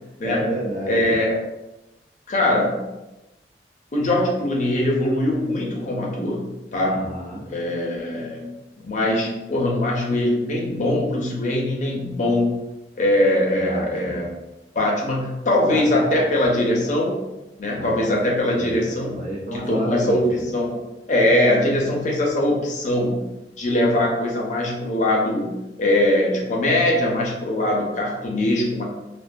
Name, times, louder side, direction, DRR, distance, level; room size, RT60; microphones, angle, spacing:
voice 1, 0.2-1.1 6.8-7.4 13.4-14.3 15.7-16.2 17.7-18.8 19.1-20.5, equal, 45° right, -4 dB, 0.7 m, -31 dB
voice 2, 0.9-1.3 2.3-2.8 3.9-6.4 6.7-7.0 7.5-8.4 8.8-12.5 13.0-14.3 14.8-17.2 17.6-19.2 19.5-20.8 21.1-23.2 23.6-25.5 25.8-28.8, left 1 dB, 45° left, -2 dB, 0.5 m, -21 dB
2.5 x 2.2 x 2.5 m, 1.0 s
head